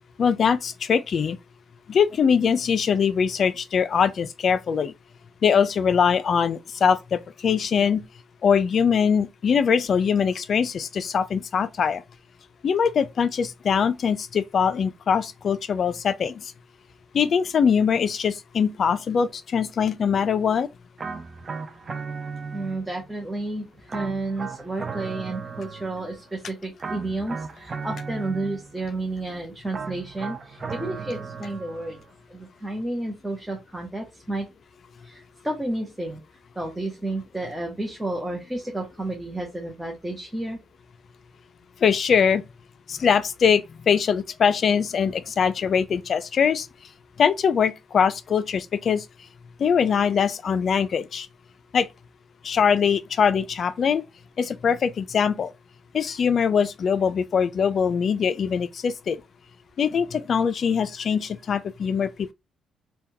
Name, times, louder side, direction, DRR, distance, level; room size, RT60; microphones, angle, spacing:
voice 1, 0.2-1.4 1.9-4.9 5.4-8.0 8.4-12.0 12.6-16.5 17.1-20.7 41.8-42.4 42.9-46.7 47.2-49.0 49.6-51.3 51.7-51.9 52.4-54.0 54.4-55.5 55.9-59.2 59.8-62.3, left 7 dB, 55° left, 0.4 m, -22 dB
sound 1, 21.0-23.1 23.9-26.3 26.8-28.9 29.7-32.1, right 5 dB, 35° right, 0.5 m, -36 dB
voice 2, 22.5-32.0 32.3-34.5 35.0-36.2 36.6-40.6, right 2 dB, 10° right, 0.9 m, -31 dB
3.4 x 2.3 x 2.7 m
cardioid pair, 90°, 0 cm